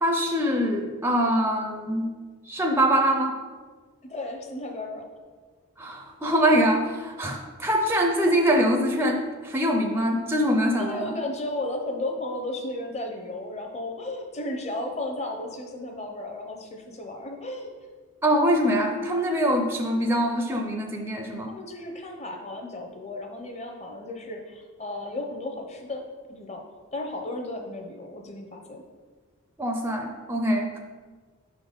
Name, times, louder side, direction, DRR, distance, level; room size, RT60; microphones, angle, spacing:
voice 1, 0.0-2.1 2.5-3.3 5.8-11.2 18.2-21.5 29.6-30.8, equal, 10° right, 3 dB, 0.4 m, -24 dB
voice 2, 4.0-5.1 10.8-17.7 21.5-26.0 26.3-26.6 26.9-28.8, left 2 dB, 30° left, 3 dB, 0.7 m, -34 dB
5.5 x 4.0 x 5.1 m, 1.5 s
head